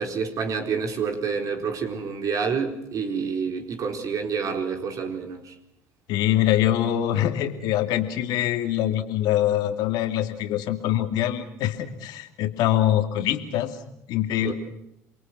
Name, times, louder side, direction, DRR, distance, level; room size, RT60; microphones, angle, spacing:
voice 1, 0.0-5.5 14.4-14.5, right 5 dB, 50° right, 4 dB, 4.2 m, -28 dB
voice 2, 6.1-13.7 14.1-14.5, left 12 dB, 70° left, 7 dB, 2.7 m, -24 dB
29.0 x 22.5 x 6.2 m, 0.79 s
hypercardioid pair, 75°, 7 cm